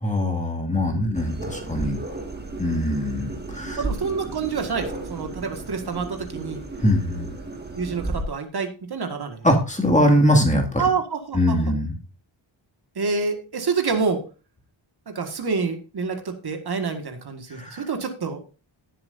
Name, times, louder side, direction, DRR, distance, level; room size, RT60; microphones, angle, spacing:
voice 1, 0.0-2.0 2.6-3.8 6.8-7.3 9.4-10.8 11.3-11.9 17.5-17.8, equal, 15° left, 1 dB, 2.2 m, -22 dB
voice 2, 0.8-1.2 3.1-3.2 3.8-6.6 7.7-9.5 10.8-11.7 13.0-14.2 15.1-18.4, right 5 dB, 55° right, 5 dB, 1.8 m, -27 dB
sound 1, 1.1-8.2, right 2 dB, 20° right, 1.8 m, -34 dB
17.5 x 7.6 x 2.6 m, 0.32 s
wide cardioid pair, 150°, 46 cm